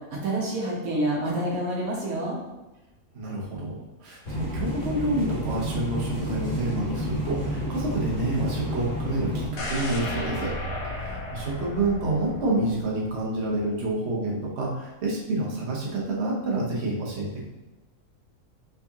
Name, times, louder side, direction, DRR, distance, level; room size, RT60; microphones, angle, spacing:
voice 1, 0.2-2.4, right 1 dB, 85° right, -3 dB, 1.5 m, -27 dB
voice 2, 3.1-10.5 10.9-17.5, right 2 dB, 50° right, -3 dB, 1.2 m, -28 dB
sound 1, 4.3-9.5, equal, 55° left, 1.7 m, -30 dB
sound 2, 9.6-13.5 13.9-14.0, left 1 dB, 90° left, 1.2 m, -34 dB
4.7 x 4.0 x 2.8 m, 1.1 s
omnidirectional pair, 1.4 m